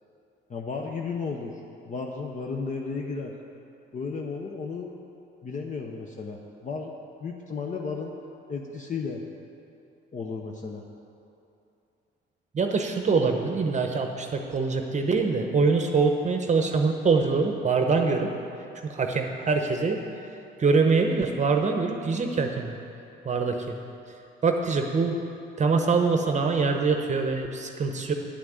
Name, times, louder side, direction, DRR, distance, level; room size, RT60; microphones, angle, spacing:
voice 1, 0.5-1.6 1.8-3.3 3.9-4.9 5.4-6.9 7.2-8.1 8.5-9.2 10.1-10.8, left 4 dB, 40° left, 1 dB, 0.8 m, -33 dB
voice 2, 12.5-18.3 18.9-20.0 20.6-22.8 23.2-23.7 24.4-25.1 25.6-28.1, right 4 dB, 35° right, 4 dB, 0.8 m, -24 dB
10.0 x 5.9 x 8.0 m, 2.8 s
cardioid pair, 90°, 20 cm